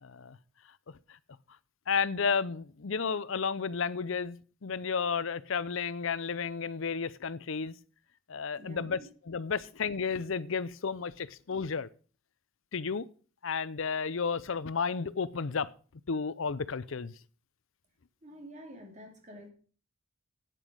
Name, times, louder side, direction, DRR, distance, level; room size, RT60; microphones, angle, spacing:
voice 1, 0.0-0.4 1.9-4.4 4.6-7.7 8.3-9.0 9.3-11.9 12.7-13.1 13.4-15.7 16.1-17.1, left 5 dB, 60° left, 0.6 m, -32 dB
voice 2, 8.6-9.1 18.2-19.5, equal, 35° right, 3.1 m, -48 dB
9.2 x 9.1 x 6.3 m
head